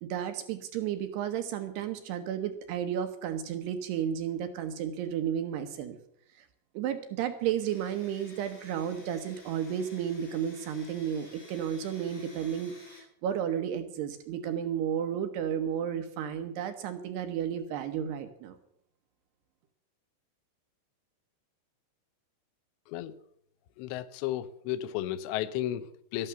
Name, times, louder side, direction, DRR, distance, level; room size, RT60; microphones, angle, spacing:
voice 1, 0.0-6.0 6.4-6.5 6.7-18.6, right 9 dB, 75° right, 2.9 m, -33 dB
Domestic sounds home sounds, 7.5-13.0, left 2 dB, 25° left, 6.0 m, -53 dB
voice 2, 23.8-26.3, left 13 dB, 80° left, 2.9 m, -33 dB
12.5 x 12.5 x 6.9 m
omnidirectional pair, 5.3 m